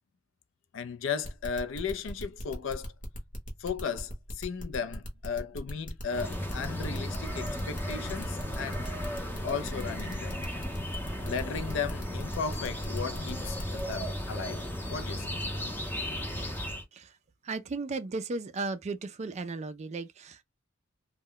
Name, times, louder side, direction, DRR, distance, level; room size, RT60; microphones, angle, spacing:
voice 1, 0.7-2.9 3.6-8.9 9.4-10.4 11.2-15.3, left 6 dB, 65° left, 0.4 m, -36 dB
sound 1, 1.2-13.9, equal, 40° left, 0.9 m, -40 dB
sound 2, 6.1-16.8, equal, 10° left, 0.6 m, -35 dB
voice 2, 17.4-20.4, right 3 dB, 35° right, 0.3 m, -35 dB
2.1 x 2.1 x 3.7 m
head